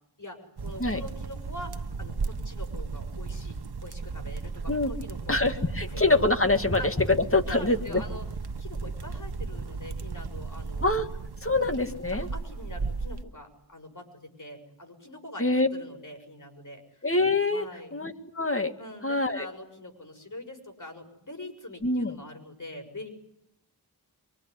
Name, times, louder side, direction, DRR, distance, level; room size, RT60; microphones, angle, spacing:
voice 1, 0.2-5.4 5.8-6.1 6.8-6.9 7.5-8.2 8.6-10.9 11.5-11.7 12.1-17.1 17.5-17.9 18.8-23.1, left 1 dB, 50° left, 5 dB, 6.6 m, -43 dB
sound 1, 0.6-13.2, right 4 dB, 75° right, 1.1 m, -35 dB
voice 2, 5.3-6.8 7.3-8.0 10.8-11.1 11.4-12.3 15.4-15.7 17.0-18.7 19.0-19.5 21.8-22.1, left 2 dB, 35° left, 6 dB, 2.4 m, -25 dB
24.5 x 24.5 x 9.7 m, 0.78 s
wide cardioid pair, 45°, 40 cm